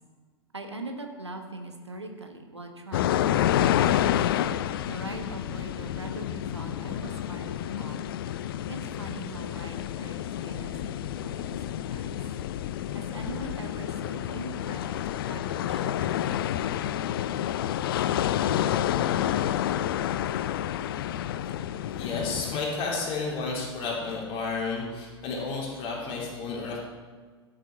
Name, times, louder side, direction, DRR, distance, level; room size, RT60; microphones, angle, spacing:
voice 1, 0.5-4.1 4.9-8.0 8.7-12.2 12.9-15.0 15.3-16.5, right 2 dB, 85° right, 5 dB, 1.3 m, -41 dB
sound 1, 2.9-22.6, left 11 dB, 55° left, 0.4 m, -29 dB
voice 2, 22.0-26.8, left 4 dB, 40° left, -3 dB, 3.4 m, -31 dB
13.0 x 7.6 x 4.6 m, 1.5 s
figure-of-eight pair, 90°, 14 cm